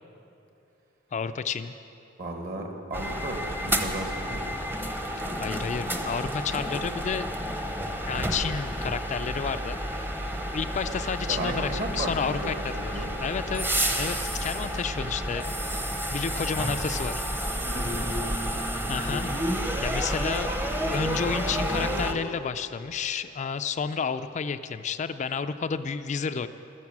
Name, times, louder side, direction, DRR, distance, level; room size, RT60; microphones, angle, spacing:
voice 1, 1.1-1.7 5.4-7.3 8.1-10.1 10.5-15.6 16.1-17.2 18.9-19.3 19.8-26.5, left 6 dB, 40° left, 10 dB, 0.3 m, -31 dB
voice 2, 2.2-4.5 11.3-13.1 17.5-18.1, right 2 dB, 45° right, 3 dB, 1.7 m, -35 dB
sound 1, 2.9-22.1, equal, 10° right, 0.8 m, -30 dB
12.5 x 10.5 x 7.3 m, 2.8 s
head